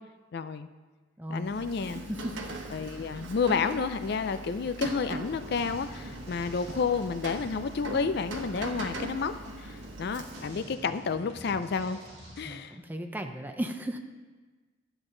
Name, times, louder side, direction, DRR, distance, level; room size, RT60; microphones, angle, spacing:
voice 1, 0.3-0.7 1.3-2.0 2.7-9.3 9.6-12.0 12.4-12.7, left 5 dB, 60° left, 11 dB, 0.4 m, -30 dB
voice 2, 1.2-1.5 2.1-2.4 12.4-14.0, equal, 10° right, 5 dB, 0.6 m, -35 dB
Rain, 1.4-10.7, right 2 dB, 90° right, 1.1 m, -40 dB
sound 1, 5.2-12.6, equal, 35° right, 3.4 m, -48 dB
11.5 x 8.0 x 3.9 m, 1.3 s
head